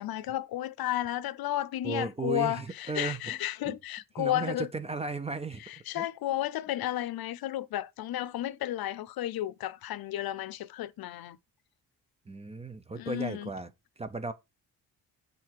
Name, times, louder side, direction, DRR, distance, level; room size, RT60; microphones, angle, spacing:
voice 1, 0.0-4.7 5.7-11.4 13.0-13.5, left 13 dB, 75° left, 0.6 m, -33 dB
voice 2, 1.8-3.4 3.6-3.8 4.2-5.6 6.0-6.1 12.3-14.3, right 4 dB, 15° right, 0.5 m, -35 dB
7.7 x 4.0 x 4.6 m
wide cardioid pair, 155°, 36 cm